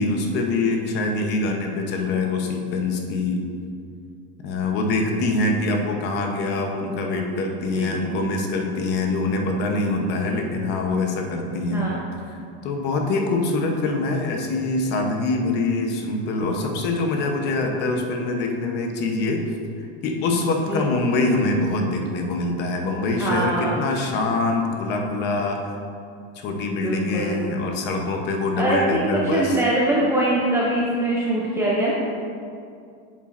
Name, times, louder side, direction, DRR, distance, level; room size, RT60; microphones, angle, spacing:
voice 1, 0.0-3.4 4.4-11.9 12.3-19.4 20.0-25.6 26.3-29.6, left 2 dB, 30° left, 2 dB, 0.8 m, -24 dB
voice 2, 7.7-8.0 10.2-10.4 11.7-12.0 20.7-20.9 23.2-23.7 26.8-27.4 28.6-31.9, right 1 dB, 10° right, -6 dB, 0.4 m, -23 dB
8.2 x 7.3 x 2.5 m, 2.4 s
supercardioid pair, 165°, 33 cm